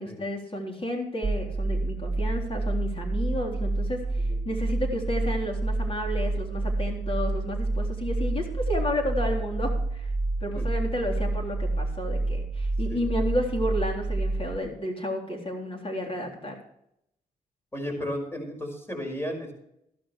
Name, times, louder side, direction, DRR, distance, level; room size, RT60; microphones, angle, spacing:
voice 1, 0.0-10.1 10.4-16.6, left 1 dB, 35° left, 1 dB, 3.7 m, -31 dB
sound 1, 1.2-14.6, right 2 dB, 30° right, 2.4 m, -28 dB
voice 2, 17.7-19.5, equal, 15° left, 2 dB, 5.7 m, -34 dB
14.5 x 12.5 x 3.2 m, 0.77 s
supercardioid pair, 60°, 16 cm